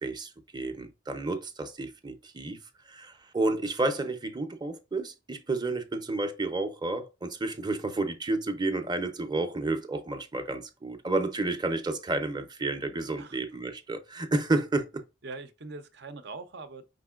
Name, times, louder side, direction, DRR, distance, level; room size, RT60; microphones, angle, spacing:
voice 1, 0.0-2.6 2.9-15.0, right 2 dB, 25° right, 0.6 m, -31 dB
voice 2, 15.2-16.8, right 3 dB, 65° right, 0.7 m, -42 dB
5.3 x 3.6 x 2.4 m
head